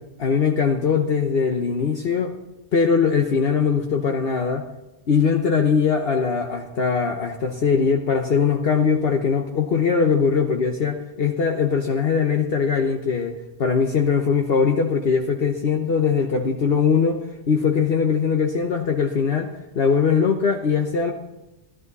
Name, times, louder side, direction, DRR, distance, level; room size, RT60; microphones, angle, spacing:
voice 1, 0.2-2.3 2.7-4.6 5.1-17.2 17.5-21.1, left 6 dB, 60° left, 3 dB, 1.2 m, -21 dB
14.0 x 13.5 x 4.1 m, 1.0 s
omnidirectional pair, 1.2 m